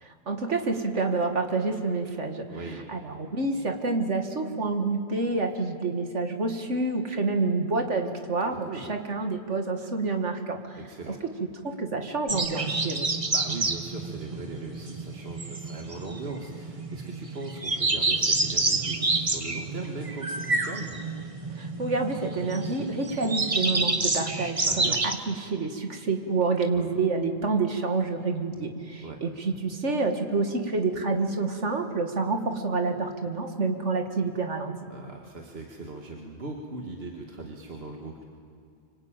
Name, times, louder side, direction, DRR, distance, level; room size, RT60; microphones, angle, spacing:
voice 1, 0.0-2.4 2.9-10.8 11.1-11.2 11.6-13.1 21.6-25.0 25.3-34.7, right 3 dB, 85° right, 5 dB, 2.4 m, -28 dB
voice 2, 2.5-2.9 8.6-8.9 10.8-11.2 12.9-21.0 24.7-25.0 26.6-26.8 29.0-29.2 34.9-38.2, right 3 dB, 60° right, 1 dB, 2.2 m, -39 dB
sound 1, 12.3-25.1, right 3 dB, 30° right, 1.3 m, -28 dB
25.5 x 25.0 x 9.0 m, 2.3 s
omnidirectional pair, 1.2 m